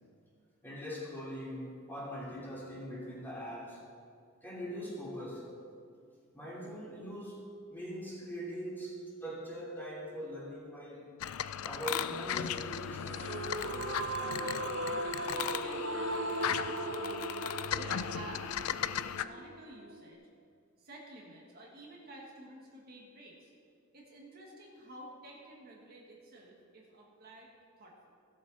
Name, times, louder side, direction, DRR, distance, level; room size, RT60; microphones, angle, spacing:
voice 1, 0.6-3.8 4.4-5.5 6.3-11.1 11.6-13.5, equal, 10° left, -6 dB, 2.7 m, -42 dB
sound 1, 11.2-19.2, left 9 dB, 85° left, 0.4 m, -37 dB
sound 2, 13.1-20.1, right 2 dB, 60° right, 0.8 m, -38 dB
voice 2, 14.3-16.9 17.7-20.2 20.8-23.5 23.9-28.1, right 1 dB, 45° right, -2 dB, 1.6 m, -51 dB
16.5 x 7.5 x 4.1 m, 2.3 s
head